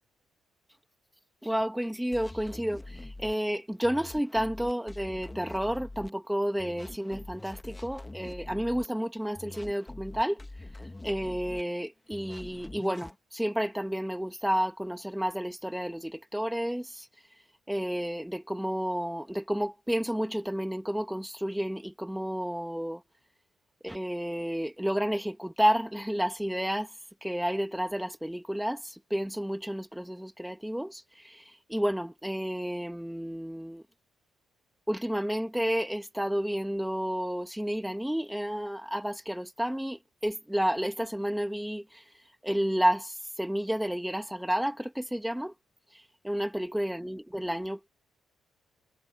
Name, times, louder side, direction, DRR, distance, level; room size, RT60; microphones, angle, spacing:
voice 1, 1.4-10.4 11.0-17.1 17.7-23.0 23.8-26.9 27.2-33.9 34.9-42.0 42.4-45.5 46.2-47.9, equal, 5° right, 2.5 m, -31 dB
sound 1, 2.1-3.3 3.8-6.1 6.6-8.9 9.3-11.6 12.1-13.1, left 2 dB, 15° left, 1.6 m, -44 dB
cardioid pair, 90°, 0 cm